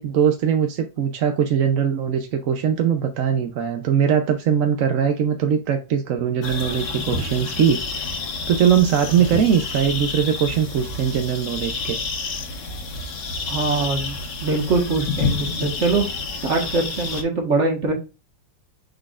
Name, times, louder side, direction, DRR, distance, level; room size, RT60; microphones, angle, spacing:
voice 1, 0.0-8.1 8.5-12.0, right 8 dB, 60° right, 5 dB, 0.8 m, -21 dB
sound 1, 6.4-17.2, left 4 dB, 70° left, 2.1 m, -29 dB
voice 2, 13.5-16.1 16.4-18.0, right 3 dB, 40° right, 3 dB, 1.6 m, -23 dB
6.5 x 6.0 x 2.4 m, 0.30 s
omnidirectional pair, 2.1 m